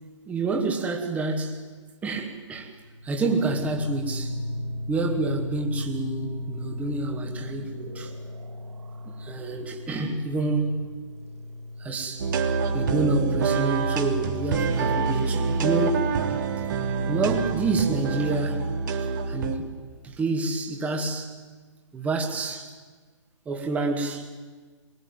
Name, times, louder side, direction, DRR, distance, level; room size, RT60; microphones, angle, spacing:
voice 1, 0.3-1.7 2.0-2.7 3.0-4.4 4.9-8.1 9.1-10.9 11.8-12.3 12.7-16.4 17.0-19.7 20.0-21.3 21.9-22.7 23.5-24.4, right 3 dB, 10° right, 2.5 m, -28 dB
sound 1, 2.7-17.3, left 1 dB, 60° right, 2.2 m, -37 dB
sound 2, 12.2-19.6, right 5 dB, 40° right, 2.8 m, -26 dB
26.0 x 23.0 x 9.2 m
figure-of-eight pair, 135°, 16 cm